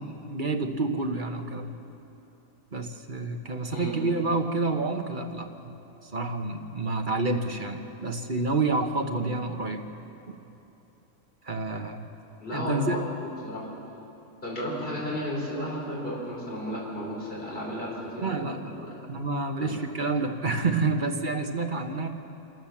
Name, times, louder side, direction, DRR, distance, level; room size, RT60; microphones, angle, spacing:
voice 1, 0.0-1.7 2.7-5.7 6.0-9.8 10.3-10.4 11.4-12.1 12.5-13.0 18.2-22.1, right 3 dB, 35° right, 4 dB, 1.3 m, -29 dB
voice 2, 12.4-13.7 14.4-18.9 19.6-19.7, equal, 35° left, -5 dB, 5.1 m, -33 dB
27.0 x 14.0 x 7.3 m, 3.0 s
omnidirectional pair, 1.6 m